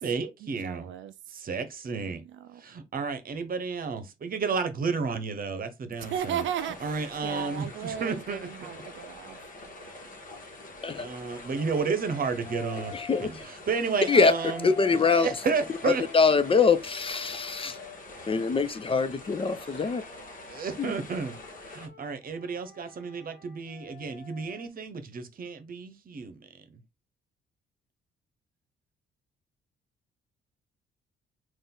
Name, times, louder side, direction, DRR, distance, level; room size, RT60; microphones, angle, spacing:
voice 1, 0.0-0.9 1.3-2.2 2.6-6.4 6.8-8.5 11.0-14.7 15.2-16.0 20.5-21.4 21.7-26.8, right 5 dB, 45° right, 0.9 m, -32 dB
voice 2, 0.6-1.1 2.0-2.6 6.0-9.4, right 9 dB, 70° right, 0.4 m, -35 dB
sound 1, 6.0-21.9, left 2 dB, 45° left, 1.4 m, -45 dB
Wind instrument woodwind instrument, 11.5-13.3 14.0-18.8 19.4-24.7, left 7 dB, 65° left, 0.9 m, -47 dB
voice 3, 12.9-13.5 14.1-14.3 14.6-15.3 15.8-17.8 18.3-20.0 20.8-20.9, left 4 dB, 30° left, 0.5 m, -24 dB
4.0 x 2.5 x 3.8 m
cardioid pair, 90°, 20 cm